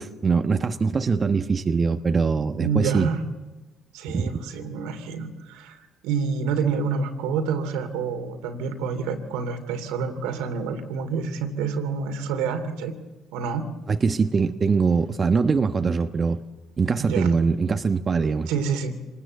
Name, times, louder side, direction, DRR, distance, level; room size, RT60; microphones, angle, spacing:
voice 1, 0.0-3.1 4.1-4.4 13.9-16.4 16.8-18.5, right 5 dB, 40° right, 1.2 m, -22 dB
voice 2, 2.6-3.2 3.9-13.0 13.3-13.7 17.0-17.3 18.5-18.9, right 5 dB, 80° right, 2.7 m, -28 dB
25.5 x 20.0 x 8.1 m
hypercardioid pair, 50°, 0 cm